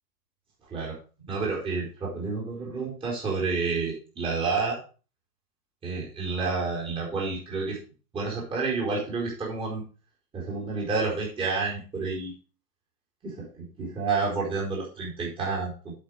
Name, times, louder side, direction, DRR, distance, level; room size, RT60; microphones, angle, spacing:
voice 1, 1.3-4.8 5.8-7.8 8.1-9.8 10.3-12.3 13.2-15.9, right 4 dB, 10° right, -4 dB, 4.3 m, -29 dB
8.7 x 7.7 x 4.7 m, 0.35 s
figure-of-eight pair, 120°, 46 cm